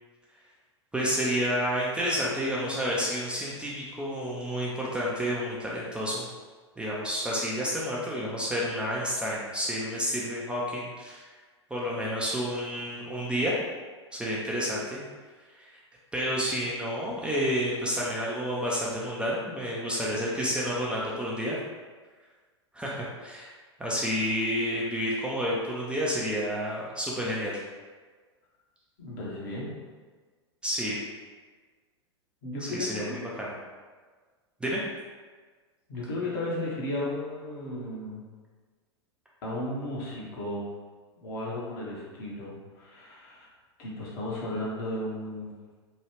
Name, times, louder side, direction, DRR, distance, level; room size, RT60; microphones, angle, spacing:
voice 1, 0.9-6.3 6.8-11.2 11.7-13.6 14.1-15.0 15.5-15.7 16.1-21.6 22.7-23.5 23.8-27.6 30.6-31.0 32.6-33.5 34.6-34.8, equal, 5° right, -6 dB, 0.4 m, -30 dB
voice 2, 29.0-29.7 32.4-33.2 35.9-38.3 39.4-40.6 41.2-43.5 43.8-45.5, left 1 dB, 50° left, -5 dB, 1.0 m, -34 dB
3.0 x 2.3 x 3.1 m, 1.4 s
figure-of-eight pair, 95°, 15 cm